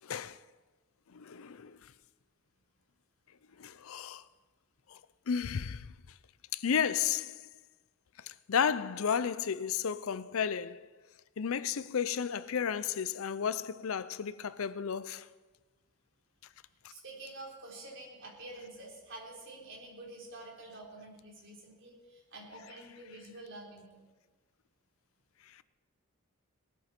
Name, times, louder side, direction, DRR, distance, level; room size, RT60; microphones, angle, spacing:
voice 1, 0.0-0.4 1.1-1.8 3.6-4.2 4.9-5.0 5.3-5.9 6.5-7.5 8.3-10.9 11.4-15.3, left 7 dB, 65° left, 0.5 m, -33 dB
voice 2, 16.9-24.0, right 2 dB, 55° right, 4.0 m, -48 dB
19.0 x 13.0 x 4.4 m
head